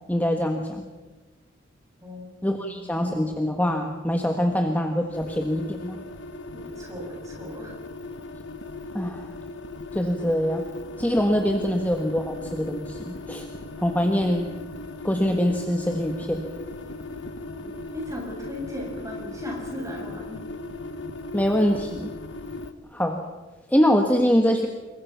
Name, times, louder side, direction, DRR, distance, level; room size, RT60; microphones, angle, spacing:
voice 1, 0.1-0.8 2.4-6.0 8.9-9.3 9.9-10.6 11.0-13.5 13.8-14.5 15.0-16.4 21.3-22.1 22.9-23.2 23.7-24.7, equal, 10° left, 3 dB, 1.4 m, -24 dB
voice 2, 2.0-2.9 6.5-7.7 17.6-20.4, left 1 dB, 15° right, -1 dB, 7.1 m, -37 dB
sound 1, 5.1-22.7, left 2 dB, 70° left, 1.2 m, -38 dB
27.0 x 22.5 x 5.9 m, 1.3 s
head